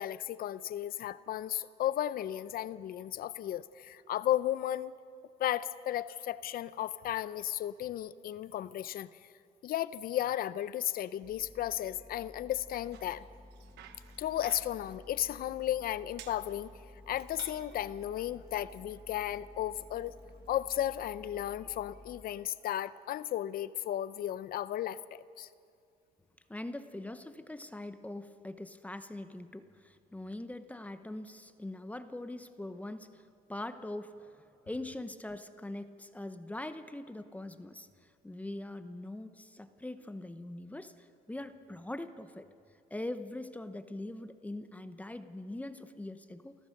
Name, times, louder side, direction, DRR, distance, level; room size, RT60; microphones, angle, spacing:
voice 1, 0.0-4.9 5.4-9.1 9.6-13.3 14.2-16.7 17.1-20.2 20.5-25.5, left 12 dB, 60° left, 16 dB, 0.7 m, -34 dB
sound 1, 11.2-22.2, left 1 dB, 25° left, 1.9 m, -54 dB
Bicycle, 12.6-21.0, right 10 dB, 80° right, 1.3 m, -57 dB
voice 2, 26.5-33.2 33.5-42.5 42.9-46.6, left 1 dB, 10° left, 10 dB, 0.9 m, -42 dB
28.0 x 14.5 x 6.6 m, 2.3 s
cardioid pair, 110°, 17 cm